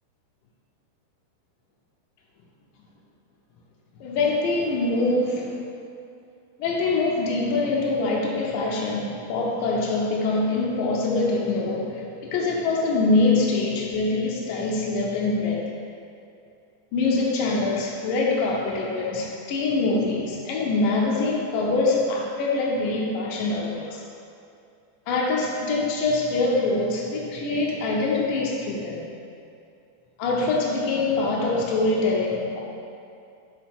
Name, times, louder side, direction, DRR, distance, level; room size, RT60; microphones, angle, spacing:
voice 1, 4.0-5.5 6.6-11.9 12.3-15.6 16.9-24.0 25.1-29.0 30.2-32.6, left 3 dB, 85° left, -3 dB, 2.0 m, -24 dB
9.4 x 3.9 x 3.6 m, 2.5 s
omnidirectional pair, 4.9 m